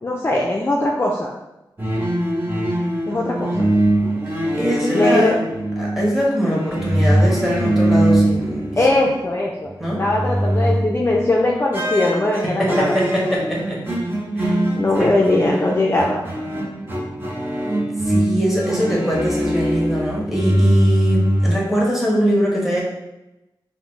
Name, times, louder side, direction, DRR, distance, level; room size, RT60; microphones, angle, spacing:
voice 1, 0.0-1.3 3.1-3.7 4.9-5.4 8.8-9.7 10.0-13.0 14.7-16.2, left 2 dB, 30° left, -2 dB, 0.4 m, -20 dB
sound 1, 1.8-9.3 9.6-11.2 11.7-21.5, right 1 dB, 25° right, 0.7 m, -21 dB
voice 2, 4.5-5.3 5.8-8.6 9.0-9.1 9.8-10.0 12.6-13.8 14.4-14.6 15.0-15.1 18.0-22.8, equal, 5° right, -4 dB, 1.1 m, -22 dB
3.8 x 2.0 x 3.1 m, 0.95 s
wide cardioid pair, 75°, 9 cm